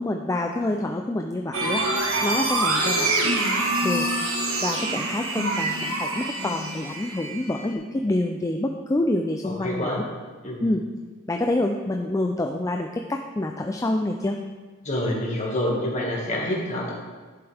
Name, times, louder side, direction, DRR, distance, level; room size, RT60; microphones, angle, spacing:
voice 1, 0.0-1.8 2.2-3.3 3.8-4.1 4.6-10.0 10.6-10.8 11.3-14.4, left 1 dB, 15° left, 3 dB, 0.4 m, -27 dB
sound 1, 1.5-7.7, right 2 dB, 75° right, 1.4 m, -25 dB
voice 2, 9.4-10.0 10.4-10.6 14.8-16.9, left 1 dB, 35° left, -2 dB, 1.9 m, -27 dB
10.5 x 7.9 x 3.5 m, 1.4 s
head